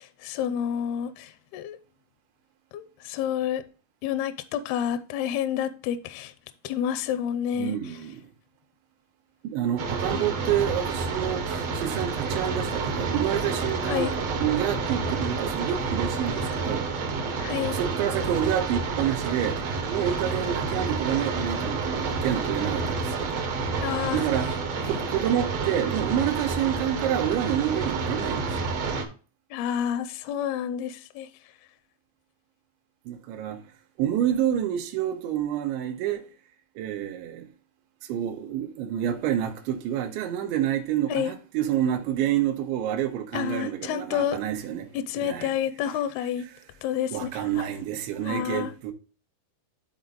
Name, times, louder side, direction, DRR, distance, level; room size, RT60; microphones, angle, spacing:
voice 1, 0.0-1.8 2.7-3.6 4.0-6.3 6.6-8.0 10.1-10.2 13.8-14.1 17.4-17.8 23.8-24.2 29.5-31.3 41.1-41.3 43.3-44.4 44.9-46.5 46.8-47.7 48.2-48.7, left 9 dB, 80° left, 2.3 m, -29 dB
voice 2, 7.6-8.3 9.4-14.1 14.4-16.9 17.7-23.3 24.1-24.5 24.8-28.6 33.1-33.6 34.0-36.2 36.8-37.5 38.1-44.9 45.2-45.5 47.1-48.9, right 10 dB, 90° right, 3.3 m, -28 dB
sound 1, 9.8-29.0, right 4 dB, 70° right, 1.5 m, -29 dB
11.5 x 4.2 x 3.9 m
omnidirectional pair, 5.1 m